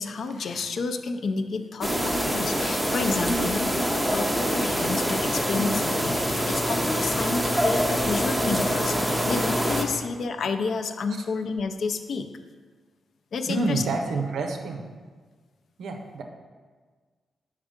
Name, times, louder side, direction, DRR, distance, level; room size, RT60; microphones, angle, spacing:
voice 1, 0.0-12.3 13.3-13.8, left 4 dB, 55° left, 8 dB, 0.4 m, -30 dB
sound 1, 1.8-9.8, equal, ahead, 0.5 m, -25 dB
voice 2, 13.5-14.9 15.8-16.2, right 3 dB, 75° right, 4 dB, 0.7 m, -29 dB
6.5 x 3.5 x 5.0 m, 1.5 s
wide cardioid pair, 160°, 0 cm